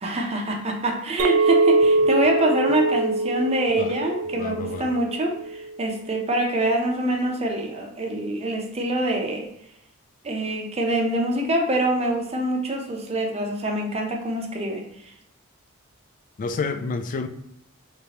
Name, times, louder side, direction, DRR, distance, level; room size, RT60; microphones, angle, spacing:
voice 1, 0.0-9.5 10.2-15.1, right 1 dB, 30° right, 2 dB, 0.6 m, -25 dB
Chink clink, 1.2-5.7, right 3 dB, 65° right, 0.3 m, -23 dB
voice 2, 4.3-4.9 16.4-17.3, left 4 dB, 40° left, 9 dB, 0.3 m, -29 dB
3.2 x 3.1 x 2.8 m, 0.75 s
head